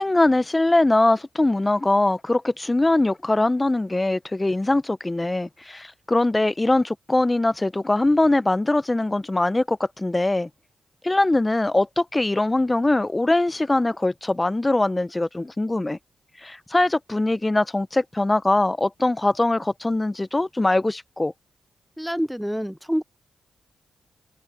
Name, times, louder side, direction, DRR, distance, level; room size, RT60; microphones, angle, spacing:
voice 1, 0.0-10.5 11.0-16.0 16.4-21.3, left 2 dB, 25° left, 1.0 m, -22 dB
voice 2, 22.0-23.0, equal, 5° right, 0.8 m, -26 dB
supercardioid pair, 45°, 0 cm